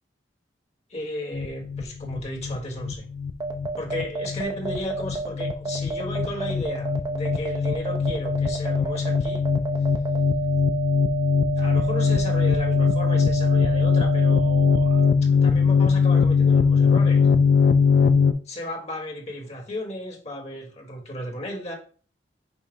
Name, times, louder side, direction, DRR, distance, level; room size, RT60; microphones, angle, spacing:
voice 1, 0.9-3.0 3.7-9.4 11.6-17.3 18.5-21.7, left 1 dB, 35° left, -1 dB, 1.2 m, -34 dB
sound 1, 1.3-18.3, left 5 dB, 70° left, 0.4 m, -21 dB
sound 2, 3.4-15.1, right 5 dB, 25° right, 0.5 m, -30 dB
5.4 x 2.0 x 4.7 m, 0.41 s
head